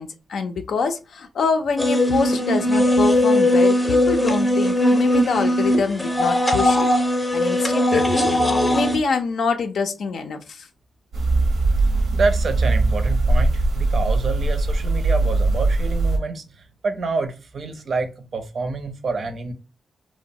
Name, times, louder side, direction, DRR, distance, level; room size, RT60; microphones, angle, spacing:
voice 1, 0.0-6.9 7.3-10.7, left 5 dB, 75° left, 0.4 m, -25 dB
sound 1, 1.8-9.0, left 1 dB, 10° left, 0.6 m, -19 dB
sound 2, 11.1-16.2, right 2 dB, 85° right, 0.8 m, -20 dB
voice 2, 12.1-19.5, right 3 dB, 55° right, 0.5 m, -27 dB
2.9 x 2.0 x 2.6 m
cardioid pair, 105°, 0 cm